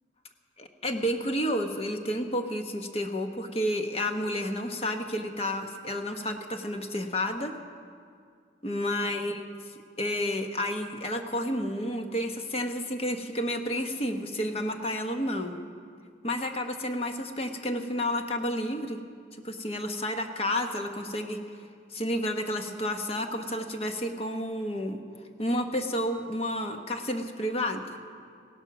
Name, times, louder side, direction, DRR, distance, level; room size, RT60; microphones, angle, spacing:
voice 1, 0.6-7.5 8.6-9.5 10.0-15.5 16.2-19.0 19.4-21.4 21.9-25.0 25.4-27.8, left 1 dB, 30° left, 5 dB, 1.0 m, -30 dB
17.0 x 12.0 x 6.0 m, 2.1 s
head